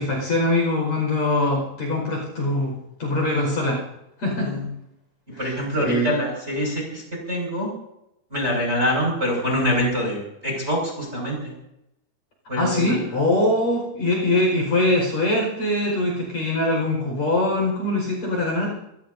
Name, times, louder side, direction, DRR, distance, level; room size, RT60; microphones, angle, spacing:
voice 1, 0.0-3.8 4.2-4.6 5.3-6.1 12.6-18.7, left 1 dB, 35° left, 0 dB, 6.2 m, -23 dB
voice 2, 4.3-4.6 5.4-7.0 7.3-7.7 8.3-11.5 12.5-13.0, equal, 15° right, -1 dB, 6.0 m, -25 dB
27.5 x 17.5 x 2.8 m, 0.83 s
omnidirectional pair, 5.5 m